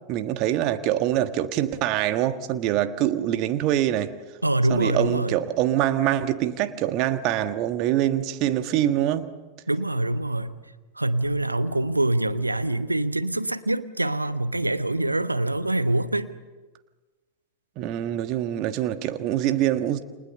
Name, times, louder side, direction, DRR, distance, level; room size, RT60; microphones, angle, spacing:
voice 1, 0.1-4.2 4.7-9.3 17.8-20.0, right 12 dB, 40° right, 1.5 m, -24 dB
voice 2, 4.4-5.4 9.7-10.6 11.0-16.3, right 1 dB, 85° right, 1.0 m, -25 dB
29.5 x 26.5 x 6.8 m
figure-of-eight pair, 90°, 0 cm